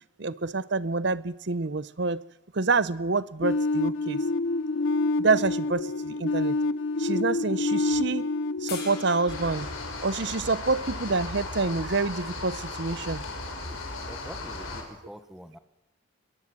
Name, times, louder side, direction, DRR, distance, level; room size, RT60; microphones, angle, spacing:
voice 1, 0.2-2.2 2.5-4.2 5.2-6.5 7.0-8.3 8.6-9.7 10.0-13.2, right 3 dB, 55° right, 0.8 m, -27 dB
sound 1, 3.4-10.2, left 2 dB, 65° left, 0.6 m, -28 dB
sound 2, 8.7-11.9 14.0-14.1, left 5 dB, 50° left, 6.0 m, -44 dB
sound 3, 9.3-14.8, left 2 dB, 85° left, 5.1 m, -36 dB
voice 2, 14.1-15.6, equal, ahead, 1.3 m, -45 dB
21.5 x 21.5 x 6.2 m
head